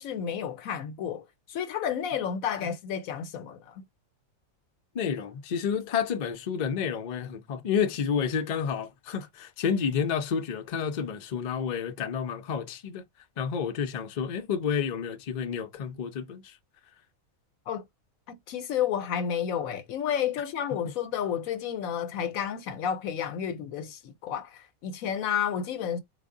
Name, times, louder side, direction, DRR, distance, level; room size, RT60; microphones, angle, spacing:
voice 1, 0.0-3.8 17.7-17.8 18.3-26.0, left 8 dB, 85° left, 1.1 m, -31 dB
voice 2, 4.9-13.0 13.4-16.6, left 7 dB, 55° left, 0.5 m, -30 dB
3.9 x 2.0 x 3.6 m
omnidirectional pair, 1.4 m